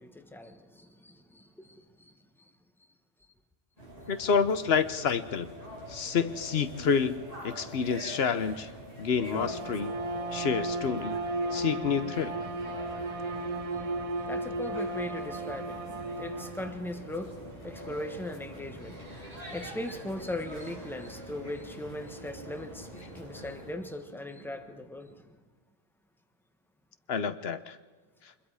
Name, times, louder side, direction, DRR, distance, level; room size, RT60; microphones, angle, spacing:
voice 1, 0.0-1.8 13.7-13.8 14.2-25.4, left 1 dB, ahead, 1.3 m, -39 dB
sound 1, 3.8-23.7, equal, 40° left, 8.0 m, -44 dB
voice 2, 4.1-5.5 5.9-8.7 9.0-9.9 10.3-11.2 11.5-12.3 27.1-27.8, left 6 dB, 80° left, 1.1 m, -28 dB
Bowed string instrument, 9.2-16.8, right 2 dB, 40° right, 0.8 m, -35 dB
25.0 x 21.5 x 4.9 m
omnidirectional pair, 1.0 m